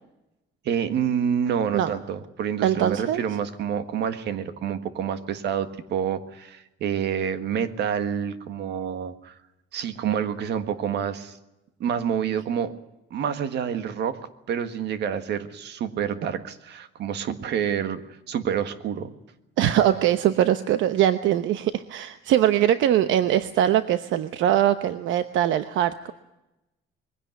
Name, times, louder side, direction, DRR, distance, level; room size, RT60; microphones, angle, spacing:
voice 1, 0.6-9.3 9.7-11.4 11.8-12.7 13.1-14.2 14.5-18.0 18.3-19.1, right 8 dB, 60° right, 10 dB, 1.7 m, -28 dB
voice 2, 2.6-3.2 19.6-26.1, right 11 dB, 75° right, 11 dB, 1.0 m, -22 dB
22.0 x 16.5 x 9.3 m, 0.94 s
cardioid pair, 175°, 20 cm